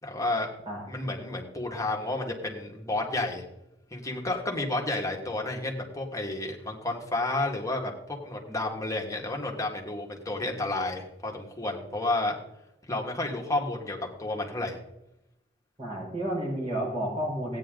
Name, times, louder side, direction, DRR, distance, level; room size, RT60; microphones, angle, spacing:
voice 1, 0.0-0.5 0.9-3.4 3.9-12.4 12.9-14.8, left 2 dB, 20° left, 0 dB, 1.9 m, -31 dB
voice 2, 15.8-17.6, right 1 dB, 35° right, -4 dB, 4.7 m, -31 dB
16.0 x 9.5 x 3.9 m, 0.87 s
head